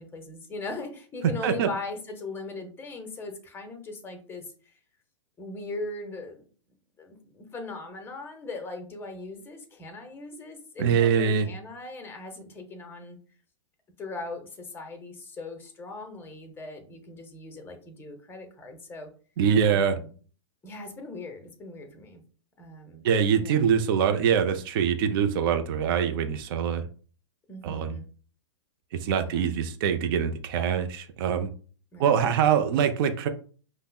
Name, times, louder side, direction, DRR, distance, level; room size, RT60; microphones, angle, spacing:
voice 1, 0.0-4.7 5.4-6.4 7.0-13.2 14.0-19.1 19.7-20.1 20.6-22.2 22.6-23.0 23.4-23.7 27.5-28.1 29.2-29.5 31.9-32.2, left 3 dB, 15° left, 5 dB, 0.7 m, -39 dB
voice 2, 10.8-11.5 19.4-20.0 23.0-26.9 27.6-28.0 29.0-31.5 32.0-33.3, right 7 dB, 50° right, 8 dB, 0.4 m, -24 dB
5.2 x 2.0 x 2.3 m, 0.40 s
hypercardioid pair, 110°, 15 cm